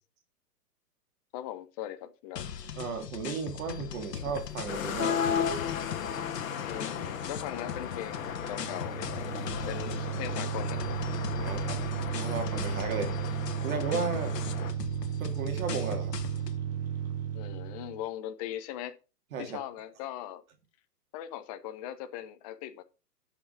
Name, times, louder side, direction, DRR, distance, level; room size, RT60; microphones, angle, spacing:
voice 1, 1.3-2.5 6.6-9.3 9.7-10.8 11.4-11.6 14.5-14.6 17.3-19.0 19.4-20.4 21.1-22.8, left 11 dB, 25° left, 0.8 m, -40 dB
sound 1, 2.4-16.6, left 8 dB, 85° left, 1.5 m, -41 dB
voice 2, 2.7-5.4 11.4-11.8 12.2-13.1 13.6-14.3 15.2-16.1 19.3-19.6, right 5 dB, 55° right, 2.6 m, -34 dB
sound 2, 4.7-14.7, left 8 dB, 55° left, 1.9 m, -35 dB
sound 3, 8.2-18.0, right 9 dB, 15° right, 0.4 m, -34 dB
11.5 x 5.9 x 5.1 m
hypercardioid pair, 150°, 48 cm